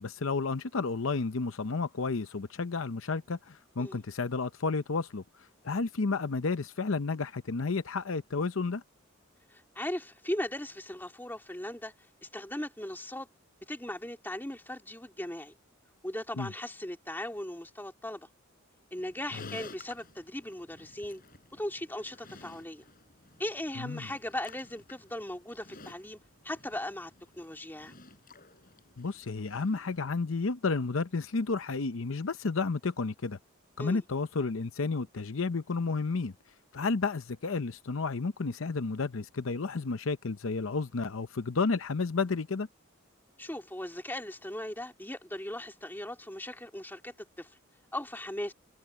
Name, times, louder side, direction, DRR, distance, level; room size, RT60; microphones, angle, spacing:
voice 1, 0.0-5.2 5.6-8.8 16.4-16.5 19.3-19.5 23.8-24.1 29.0-33.4 33.8-36.3 36.7-42.7, left 4 dB, 70° left, 0.7 m, -31 dB
voice 2, 9.5-11.9 12.2-13.3 13.7-15.5 16.0-18.3 18.9-21.2 21.5-22.8 23.4-26.2 26.4-27.9 33.8-34.0 43.4-47.5 47.9-48.5, left 1 dB, 10° left, 2.7 m, -38 dB
Livestock farm animals working animals, 19.0-30.2, left 3 dB, 45° left, 5.2 m, -54 dB
head